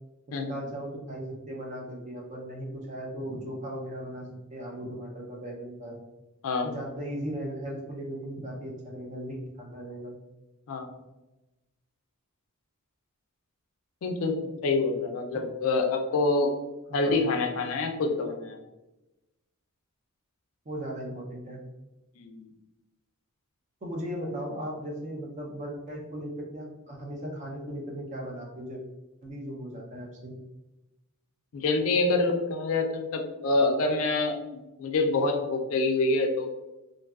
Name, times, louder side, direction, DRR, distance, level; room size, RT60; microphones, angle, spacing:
voice 1, 0.4-6.0 6.6-10.2 15.3-15.4 16.9-17.2 20.7-21.6 23.8-28.8 29.2-30.3, equal, 35° right, 0 dB, 0.5 m, -37 dB
voice 2, 14.0-16.5 16.9-18.6 22.2-22.5 31.5-36.5, left 3 dB, 65° left, 4 dB, 0.4 m, -26 dB
2.6 x 2.3 x 2.3 m, 1.0 s
head